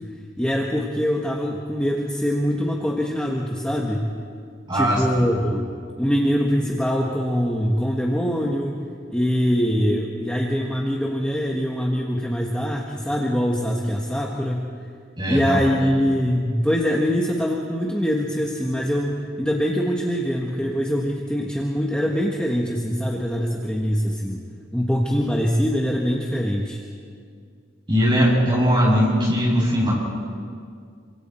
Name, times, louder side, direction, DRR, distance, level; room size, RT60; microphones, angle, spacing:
voice 1, 0.4-4.0 4.7-5.7 6.0-8.8 9.1-14.6 15.3-24.4 24.7-26.8, equal, 5° left, -2 dB, 1.4 m, -23 dB
voice 2, 4.7-5.0 15.2-15.8 27.9-29.9, equal, 25° right, -4 dB, 6.8 m, -19 dB
27.5 x 25.0 x 4.4 m, 2.2 s
head